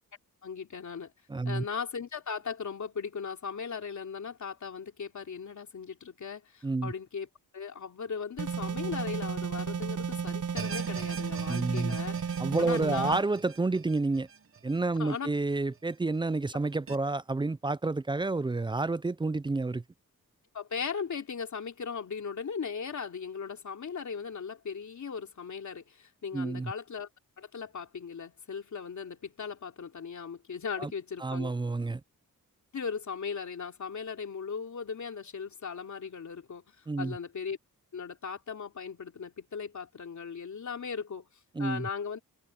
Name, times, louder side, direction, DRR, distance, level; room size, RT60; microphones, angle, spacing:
voice 1, 0.4-1.1 1.4-7.3 7.5-12.2 12.6-13.2 15.0-15.3 20.5-27.1 27.4-31.5 32.7-37.6 37.9-41.3 41.6-42.2, left 6 dB, 55° left, 3.0 m, -38 dB
voice 2, 1.3-1.6 6.6-6.9 11.5-12.0 12.4-14.3 14.6-19.8 26.3-26.7 30.8-30.9 31.2-32.0 36.9-37.2 41.6-41.9, right 3 dB, 15° right, 0.3 m, -29 dB
sound 1, 8.4-13.2, right 6 dB, 60° right, 1.5 m, -33 dB
sound 2, 10.6-15.8 16.1-16.2 16.9-17.0, right 6 dB, 40° right, 1.0 m, -45 dB
wide cardioid pair, 145°, 35 cm